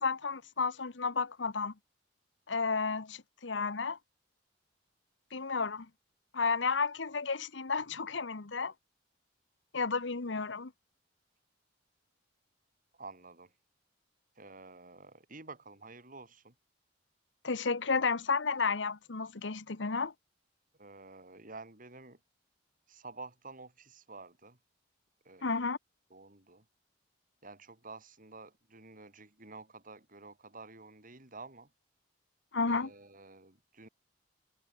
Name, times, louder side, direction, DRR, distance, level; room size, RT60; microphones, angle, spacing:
voice 1, 0.0-1.7 2.5-4.0 5.3-5.9 6.3-8.7 9.7-10.7 17.4-20.1 25.4-25.8 32.5-32.9, left 4 dB, 80° left, 1.1 m, -32 dB
voice 2, 13.0-13.5 14.4-16.5 18.0-18.1 20.8-22.2 22.9-24.6 25.2-25.7 26.1-26.7 27.4-31.7 32.6-33.9, right 3 dB, 50° right, 7.1 m, -50 dB
head